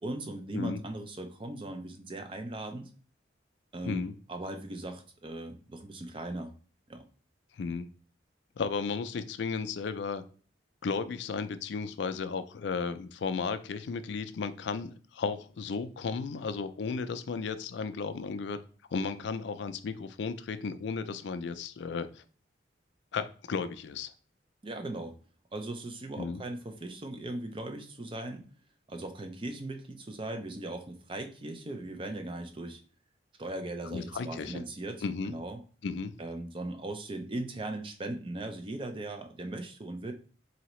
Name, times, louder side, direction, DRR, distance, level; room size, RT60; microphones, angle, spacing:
voice 1, 0.0-2.9 3.7-6.5 6.9-7.0 24.6-25.2 25.5-28.5 28.9-32.8 33.4-35.6 36.2-40.1, right 2 dB, 25° right, 6 dB, 0.4 m, -38 dB
voice 2, 3.8-4.1 7.6-7.9 8.6-10.2 10.8-18.6 18.9-22.2 23.1-24.1 26.2-26.4 33.9-34.6 35.0-35.3 35.8-36.1, left 5 dB, 70° left, 11 dB, 0.4 m, -34 dB
4.1 x 2.7 x 3.0 m, 0.42 s
head